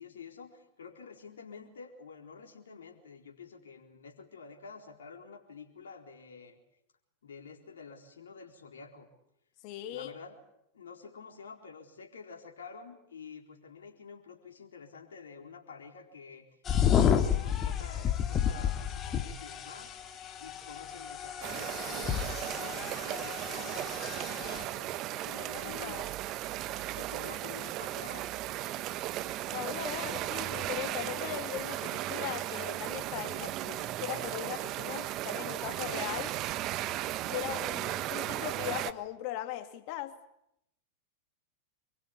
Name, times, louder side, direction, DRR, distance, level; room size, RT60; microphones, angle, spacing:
voice 1, 0.0-6.6 7.2-9.1 9.9-10.4 10.7-16.5 16.8-20.0 20.4-24.0 24.3-26.0 26.9-28.2, left 5 dB, 75° left, 1 dB, 4.2 m, -49 dB
voice 2, 9.6-10.1 25.4-26.1 29.5-36.4 37.3-40.1, left 13 dB, 50° left, 7 dB, 3.0 m, -39 dB
sound 1, 16.7-24.6, left 8 dB, 30° left, 2.4 m, -31 dB
sound 2, 21.4-38.9, right 14 dB, 40° right, 1.3 m, -36 dB
26.5 x 23.0 x 8.6 m, 0.79 s
hypercardioid pair, 95°, 0 cm